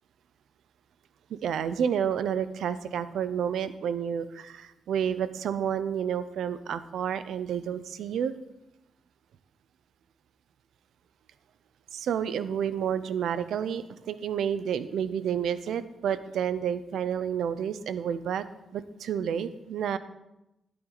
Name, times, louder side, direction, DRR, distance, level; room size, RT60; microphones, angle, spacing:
voice 1, 1.3-8.3 11.9-18.4 18.7-20.0, right 8 dB, 80° right, 13 dB, 0.7 m, -30 dB
12.5 x 10.5 x 4.0 m, 0.91 s
wide cardioid pair, 155°, 0 cm